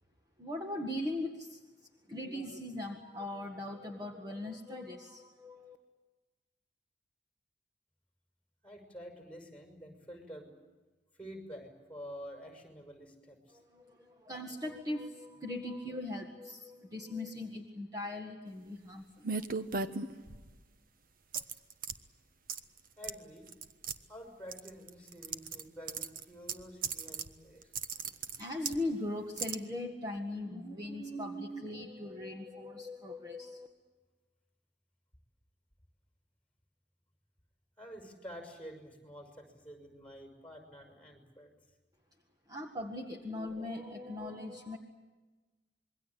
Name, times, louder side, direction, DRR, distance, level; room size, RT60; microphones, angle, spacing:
voice 1, 0.4-1.6 2.1-5.8 13.5-19.2 28.4-33.7 42.5-44.8, left 1 dB, 20° right, 3 dB, 1.9 m, -40 dB
voice 2, 8.6-10.5 11.2-13.6 23.0-23.5 24.1-27.7 37.8-41.5, equal, 5° left, 4 dB, 6.2 m, -49 dB
sound 1, 19.2-20.6 21.3-22.0 22.5-22.8 23.0-23.1 23.5-23.9 24.5-25.6 25.9-27.3 27.6-28.8 29.4-29.6, right 5 dB, 50° right, 1.3 m, -36 dB
27.0 x 22.5 x 8.5 m, 1.2 s
head